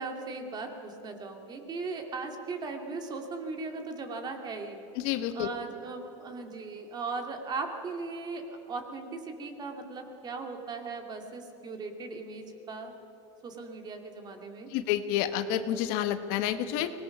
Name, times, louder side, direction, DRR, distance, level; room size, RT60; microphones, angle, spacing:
voice 1, 0.0-4.8 5.3-13.0 13.4-14.7, right 4 dB, 30° right, 4 dB, 2.3 m, -38 dB
voice 2, 5.0-5.5 14.7-16.9, left 11 dB, 60° left, 10 dB, 1.1 m, -29 dB
24.0 x 19.5 x 6.0 m, 3.0 s
supercardioid pair, 135°, 15 cm